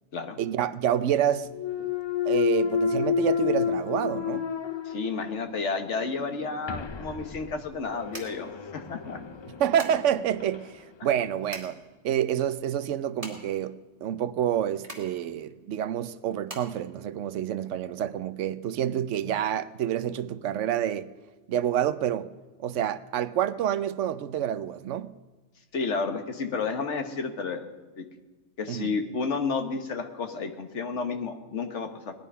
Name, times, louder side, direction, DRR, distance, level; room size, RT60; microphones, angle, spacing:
voice 1, 0.4-1.5 1.8-1.9 2.2-4.5 9.6-11.8 12.0-21.1 21.5-22.3 22.6-25.1 28.7-28.9, right 10 dB, 90° right, 1.0 m, -28 dB
Thump thud, 1.5-5.5 6.0-10.7, left 8 dB, 45° left, 0.3 m, -30 dB
voice 2, 4.8-9.2 25.7-27.7 28.0-28.1 28.6-32.1, left 4 dB, 80° left, 1.6 m, -31 dB
sound 1, 6.7-17.8, right 1 dB, 30° right, 2.5 m, -47 dB
18.5 x 11.0 x 5.5 m
omnidirectional pair, 1.2 m